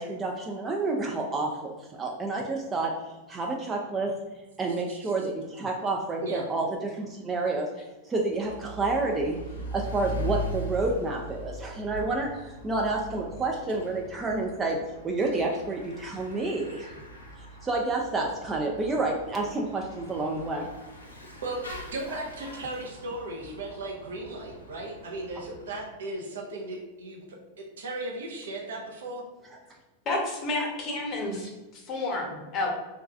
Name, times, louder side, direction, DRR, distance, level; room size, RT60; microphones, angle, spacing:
voice 1, 0.0-2.9 3.3-4.1 4.6-7.7 8.0-9.4 9.7-14.8 15.0-16.9 17.6-20.7 22.1-22.2, right 3 dB, 20° right, 0 dB, 0.3 m, -29 dB
Bicycle / Mechanisms, 8.3-25.9, equal, 75° left, 0.6 m, -41 dB
voice 2, 21.9-29.2, right 2 dB, 65° right, 0 dB, 0.6 m, -36 dB
voice 3, 30.1-32.7, left 2 dB, 30° left, -1 dB, 0.8 m, -30 dB
3.0 x 2.3 x 2.4 m, 1.1 s
figure-of-eight pair, 90°, 0 cm